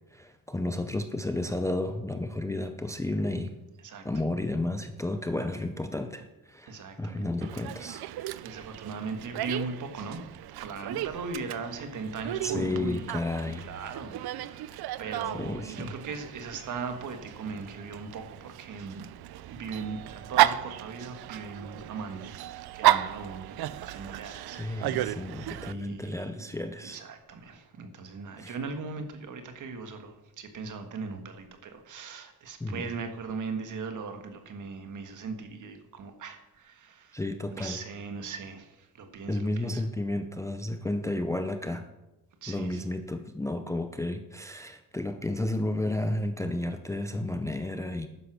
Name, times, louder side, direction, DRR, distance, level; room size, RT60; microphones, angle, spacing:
voice 1, 0.1-3.6 4.0-8.0 12.4-13.7 15.3-16.0 24.6-27.0 28.4-28.6 32.6-32.9 37.1-37.8 39.3-41.9 42.5-48.1, left 2 dB, 10° left, 8 dB, 0.5 m, -32 dB
voice 2, 6.7-7.3 8.4-10.3 10.5-19.1 19.5-22.5 22.7-25.2 25.6-26.3 26.8-37.2 37.5-39.8 42.4-42.9, right 4 dB, 55° right, 7 dB, 1.6 m, -39 dB
Dog, 7.4-25.7, right 14 dB, 90° right, 0.6 m, -33 dB
12.0 x 9.7 x 6.1 m, 0.98 s
cardioid pair, 175°, 37 cm